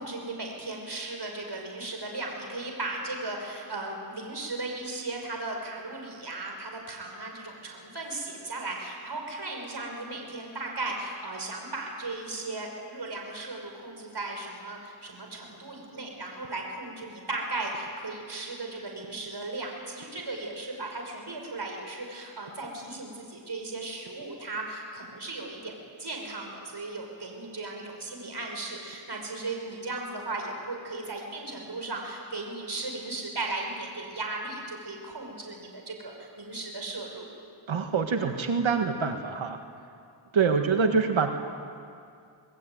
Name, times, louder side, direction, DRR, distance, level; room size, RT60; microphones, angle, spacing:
voice 1, 0.0-25.7 26.0-37.3, right 2 dB, 55° right, 2 dB, 5.6 m, -36 dB
voice 2, 37.7-39.6 40.3-41.3, right 5 dB, 85° right, 5 dB, 1.7 m, -25 dB
26.0 x 20.0 x 9.2 m, 2.3 s
cardioid pair, 45°, 47 cm